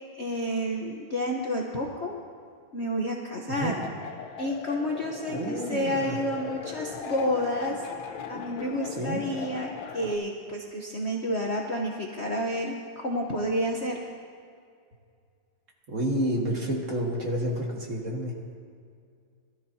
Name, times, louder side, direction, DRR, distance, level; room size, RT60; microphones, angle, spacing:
voice 1, 0.1-2.1 2.7-3.8 4.4-7.9 8.3-14.0, equal, 45° left, -1 dB, 0.9 m, -30 dB
sound 1, 3.5-10.2, left 6 dB, 70° left, 1.6 m, -39 dB
voice 2, 5.3-6.2 9.0-9.2 15.9-18.4, right 1 dB, 40° right, -2 dB, 1.8 m, -29 dB
22.0 x 13.0 x 2.8 m, 2.3 s
omnidirectional pair, 2.4 m